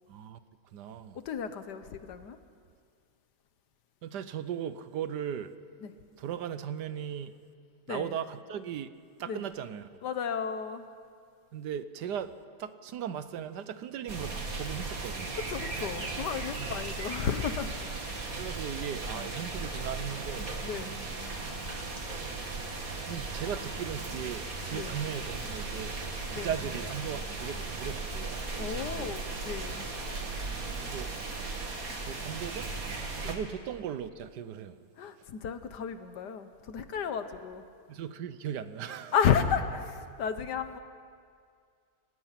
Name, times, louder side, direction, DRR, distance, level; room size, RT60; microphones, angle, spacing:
voice 1, 0.1-0.4 0.7-1.2 4.0-5.5 6.2-7.4 7.9-8.9 9.2-9.9 11.5-12.3 12.6-15.4 16.6-16.7 18.4-20.5 22.9-26.0 26.3-29.1 30.8-31.1 32.0-32.7 33.2-34.8 37.9-39.1, right 9 dB, 70° right, 13 dB, 1.3 m, -37 dB
voice 2, 1.1-2.4 5.8-5.9 7.9-8.1 9.3-9.4 10.0-10.9 15.3-18.0 19.1-19.3 20.6-20.9 24.7-25.0 26.3-26.6 28.6-29.9 33.2-33.3 35.0-37.6 39.1-40.8, left 7 dB, 70° left, 10 dB, 1.6 m, -33 dB
sound 1, 14.1-33.3, right 3 dB, 50° right, 2.5 m, -37 dB
29.5 x 17.5 x 5.8 m, 2.2 s
omnidirectional pair, 1.9 m